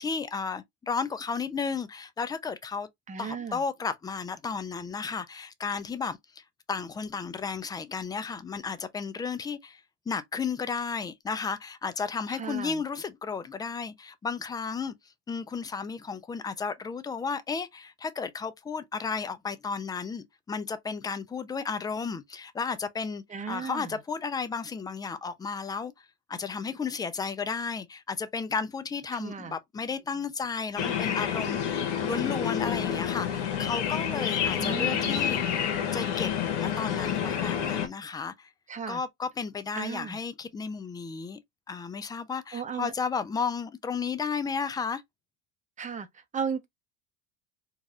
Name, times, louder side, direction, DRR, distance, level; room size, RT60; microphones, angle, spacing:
voice 1, 0.0-2.9 3.2-6.4 6.7-14.9 15.3-35.4 35.9-36.3 36.6-38.5 38.9-41.4 41.7-45.0, left 5 dB, 10° left, 0.4 m, -33 dB
voice 2, 3.1-3.6 12.3-12.8 23.3-24.0 29.1-29.6 34.6-35.1 38.7-39.0 39.8-40.2 42.5-42.9 45.8-46.1 46.3-46.7, right 6 dB, 20° right, 0.7 m, -35 dB
sound 1, 30.8-37.9, left 8 dB, 75° left, 1.0 m, -29 dB
4.0 x 2.4 x 2.3 m
supercardioid pair, 100°, 36 cm